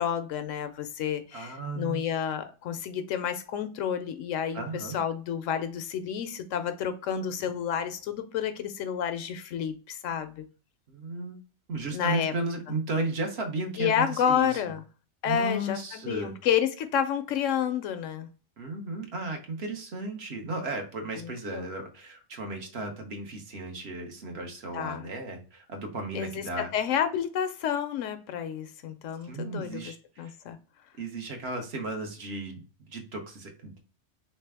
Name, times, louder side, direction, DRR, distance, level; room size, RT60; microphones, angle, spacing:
voice 1, 0.0-10.4 11.9-12.3 13.8-14.8 15.2-18.3 21.2-21.7 24.7-25.1 26.1-30.6, left 8 dB, 85° left, 1.0 m, -30 dB
voice 2, 1.3-2.1 4.5-5.0 7.4-7.5 10.9-11.4 11.7-14.6 15.2-16.4 18.6-26.7 29.2-30.3 31.0-33.8, right 2 dB, 60° right, 1.1 m, -35 dB
3.3 x 3.2 x 3.3 m
omnidirectional pair, 1.3 m